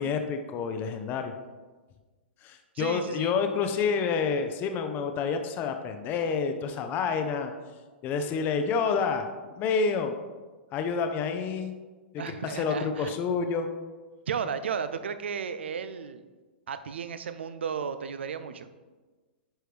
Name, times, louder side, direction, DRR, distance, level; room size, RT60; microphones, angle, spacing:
voice 1, 0.0-1.3 2.4-7.5 8.0-9.3 9.6-10.1 10.7-11.7 12.3-13.7, left 5 dB, 35° left, 6 dB, 0.6 m, -28 dB
voice 2, 2.7-3.3 12.2-13.1 14.3-16.2 16.7-18.7, right 6 dB, 80° right, 11 dB, 0.5 m, -34 dB
10.0 x 4.5 x 3.4 m, 1.3 s
hypercardioid pair, 125°, 6 cm